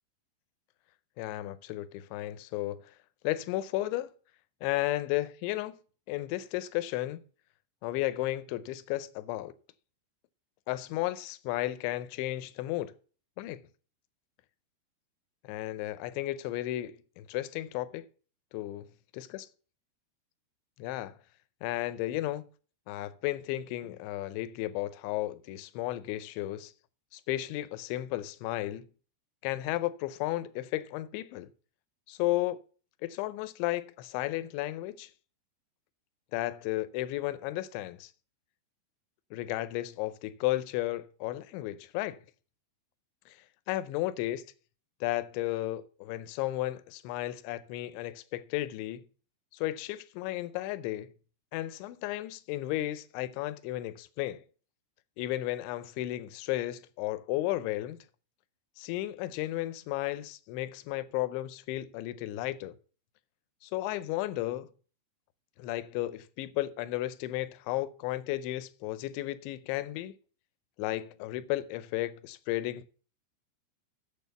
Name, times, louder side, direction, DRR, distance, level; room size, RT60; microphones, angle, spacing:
voice 1, 1.2-2.8 3.2-4.1 4.6-5.8 6.1-7.2 7.8-9.5 10.7-12.9 13.4-13.6 15.4-18.1 18.5-18.9 19.2-19.4 20.8-21.2 21.6-22.5 22.9-26.7 27.1-28.9 29.4-31.5 32.1-32.6 33.0-35.1 36.3-38.1 39.3-42.2 43.3-43.4 43.7-44.4 45.0-49.0 49.5-51.1 51.5-54.4 55.2-58.0 58.8-62.8 63.6-64.7 65.6-70.1 70.8-72.9, left 16 dB, 85° left, 3.0 m, -33 dB
8.4 x 7.1 x 7.0 m
omnidirectional pair, 5.2 m